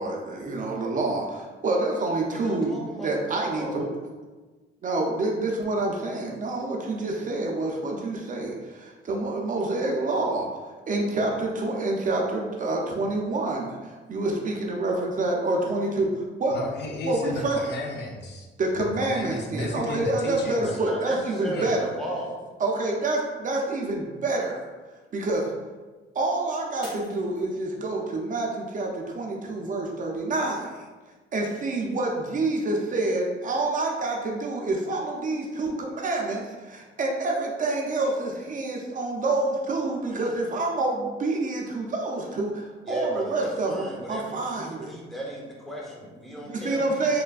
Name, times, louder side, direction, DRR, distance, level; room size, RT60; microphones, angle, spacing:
voice 1, 0.0-3.9 4.8-10.5 10.9-16.1 16.4-16.6 17.0-17.6 18.6-21.9 22.6-24.7 25.1-25.5 26.2-30.8 31.3-44.9 46.5-47.2, right 2 dB, 40° right, 0 dB, 0.5 m, -27 dB
voice 2, 2.3-3.8 20.8-22.3 42.9-46.9 47.1-47.2, right 1 dB, ahead, -4 dB, 0.8 m, -36 dB
voice 3, 16.5-18.5 18.7-20.8 21.5-21.7, left 2 dB, 60° left, 0 dB, 0.5 m, -34 dB
Shatter, 26.8-28.1 28.6-29.1 29.6-29.7, left 1 dB, 25° left, 1.5 m, -46 dB
3.2 x 2.1 x 2.3 m, 1.3 s
cardioid pair, 90°, 20 cm